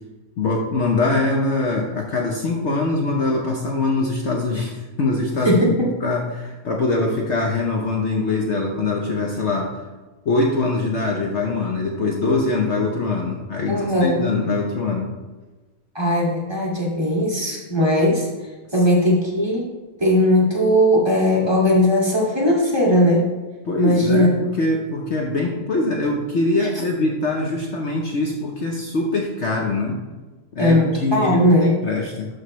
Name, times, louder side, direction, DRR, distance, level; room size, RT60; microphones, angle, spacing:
voice 1, 0.4-5.7 6.0-9.7 10.2-15.1 23.6-30.0 30.5-32.3, left 2 dB, 55° left, 0 dB, 1.0 m, -23 dB
voice 2, 13.7-14.3 15.9-18.3 18.7-19.7 20.0-23.3 23.8-24.3 30.6-31.7, equal, 15° right, -4 dB, 1.9 m, -18 dB
12.5 x 4.8 x 3.1 m, 1.2 s
omnidirectional pair, 1.6 m